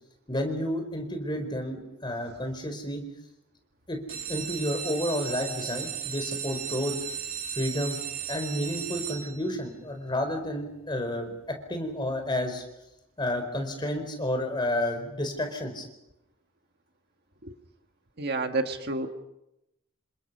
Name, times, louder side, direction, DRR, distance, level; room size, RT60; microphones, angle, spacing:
voice 1, 0.3-3.0 3.9-4.0 4.3-6.9 7.5-8.0 8.3-12.6 13.2-15.9, left 1 dB, 20° left, 6 dB, 4.3 m, -31 dB
sound 1, 4.0-9.7 10.3-10.8 11.2-11.3 11.5-11.6 12.1-12.2, right 8 dB, 90° right, 5.1 m, -36 dB
voice 2, 18.2-19.1, right 3 dB, 50° right, 6 dB, 1.7 m, -29 dB
28.5 x 26.0 x 5.5 m, 0.89 s
head